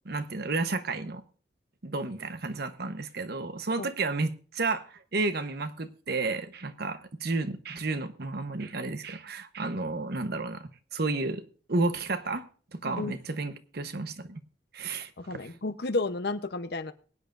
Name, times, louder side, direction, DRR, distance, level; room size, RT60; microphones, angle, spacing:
voice 1, 0.0-1.2 1.8-11.4 11.7-12.4 12.8-14.4 14.7-15.5, right 3 dB, 60° right, 1.0 m, -32 dB
voice 2, 15.2-16.9, left 2 dB, 60° left, 0.8 m, -32 dB
22.5 x 9.3 x 2.5 m
head